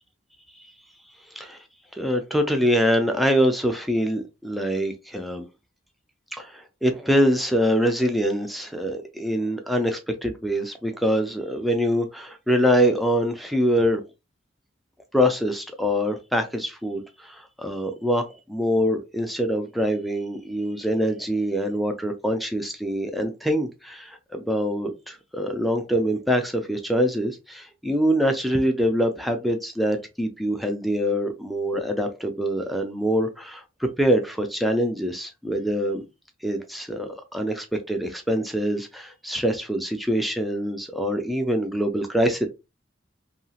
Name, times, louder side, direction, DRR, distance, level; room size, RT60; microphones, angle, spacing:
voice 1, 1.9-5.5 6.3-14.0 15.1-33.6 34.0-36.1 36.4-42.5, equal, ahead, 4 dB, 0.4 m, -24 dB
2.8 x 2.4 x 2.7 m, 0.26 s
head